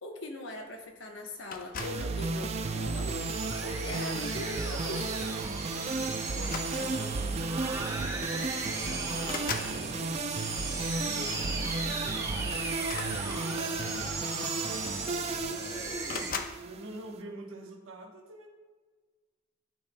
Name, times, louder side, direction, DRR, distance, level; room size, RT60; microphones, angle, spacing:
voice 1, 0.0-3.2 3.6-5.1, left 1 dB, 65° left, 2 dB, 1.0 m, -40 dB
sound 1, 1.5-2.1 3.0-3.3 4.8-5.0 5.3-5.5 6.3-7.2 8.2-8.3 8.6-9.8 12.8-13.9 14.8-14.9 15.1-15.6 16.1-16.6, left 5 dB, 45° left, 0.4 m, -39 dB
sound 2, 1.8-17.2, right 3 dB, 30° right, 0.4 m, -34 dB
sound 3, 2.7-16.3, right 3 dB, 15° right, 0.7 m, -37 dB
voice 2, 5.9-10.2 10.8-15.7 16.6-18.5, right 1 dB, 75° right, 2 dB, 1.0 m, -47 dB
12.0 x 4.3 x 2.2 m, 1.4 s
head